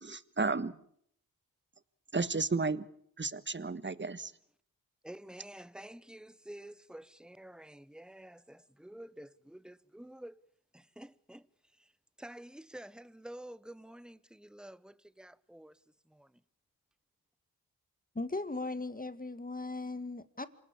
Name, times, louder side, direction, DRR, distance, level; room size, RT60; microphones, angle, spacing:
voice 1, 0.0-0.7 2.1-2.9 3.2-4.3, right 4 dB, 30° right, 1.5 m, -33 dB
voice 2, 5.0-10.4 10.7-11.4 12.2-15.7 16.1-16.3, right 1 dB, ahead, 1.0 m, -49 dB
voice 3, 18.1-20.5, left 2 dB, 25° left, 2.0 m, -38 dB
27.0 x 18.5 x 8.6 m
cardioid pair, 50°, 36 cm